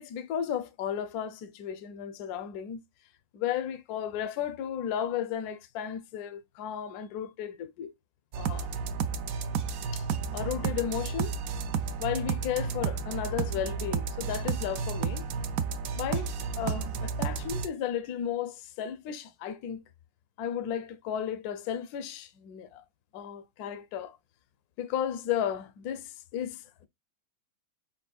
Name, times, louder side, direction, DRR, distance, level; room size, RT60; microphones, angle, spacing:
voice 1, 0.0-2.8 3.3-7.9 8.4-8.7 9.9-10.1 10.3-11.4 12.0-15.3 15.9-19.8 20.4-22.8 23.1-24.2 24.8-26.9, left 9 dB, 70° left, 1.0 m, -34 dB
sound 1, 8.3-17.7, right 6 dB, 70° right, 0.8 m, -32 dB
5.1 x 4.3 x 2.3 m
omnidirectional pair, 1.9 m